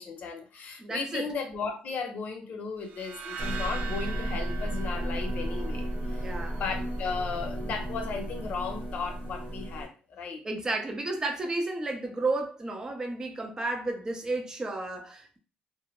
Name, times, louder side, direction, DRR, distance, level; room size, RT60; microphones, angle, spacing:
voice 1, 0.0-6.2 6.5-10.4, left 5 dB, 55° left, 0.7 m, -35 dB
voice 2, 0.8-1.3 6.2-6.6 10.4-15.4, right 2 dB, 20° right, 0.5 m, -32 dB
sound 1, 2.9-6.1, right 6 dB, 75° right, 0.4 m, -41 dB
sound 2, 3.4-9.9, right 1 dB, 50° right, 0.9 m, -33 dB
2.1 x 2.0 x 2.9 m
cardioid pair, 115°, 3 cm